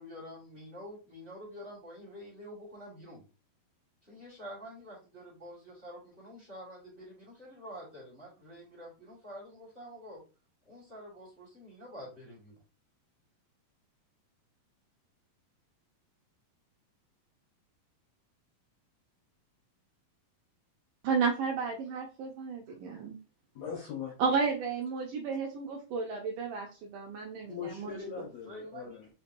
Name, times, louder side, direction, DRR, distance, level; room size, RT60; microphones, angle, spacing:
voice 1, 0.0-3.2 4.0-10.2 10.6-12.5 28.4-29.0, equal, 30° right, -6 dB, 1.1 m, -47 dB
voice 2, 21.0-23.2 24.2-27.9, right 5 dB, 80° right, 0 dB, 1.9 m, -32 dB
voice 3, 23.5-24.5 27.5-29.1, left 7 dB, 85° left, 0 dB, 1.5 m, -41 dB
5.8 x 2.7 x 2.6 m, 0.34 s
omnidirectional pair, 4.2 m